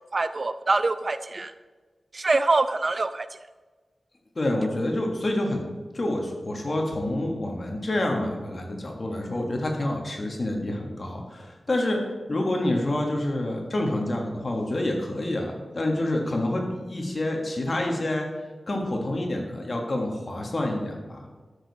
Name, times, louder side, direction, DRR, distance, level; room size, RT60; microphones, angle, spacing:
voice 1, 0.1-1.5 2.1-3.3, right 3 dB, 45° right, 11 dB, 0.5 m, -24 dB
voice 2, 4.3-5.7 5.9-12.0 12.3-18.2 18.7-21.2, left 1 dB, 40° left, 1 dB, 1.6 m, -27 dB
13.0 x 6.8 x 4.2 m, 1.3 s
wide cardioid pair, 125°, 0 cm